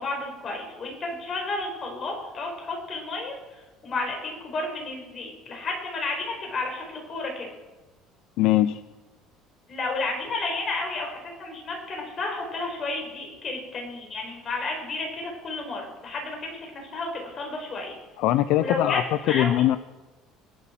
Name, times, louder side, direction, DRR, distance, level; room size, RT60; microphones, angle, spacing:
voice 1, 0.0-7.5 9.7-18.0 18.6-19.5, left 2 dB, 35° left, 1 dB, 4.8 m, -32 dB
voice 2, 8.4-8.8 18.2-19.0 19.3-19.8, left 14 dB, 70° left, 14 dB, 0.5 m, -21 dB
19.0 x 7.8 x 5.9 m, 1.2 s
cardioid pair, 120°, 0 cm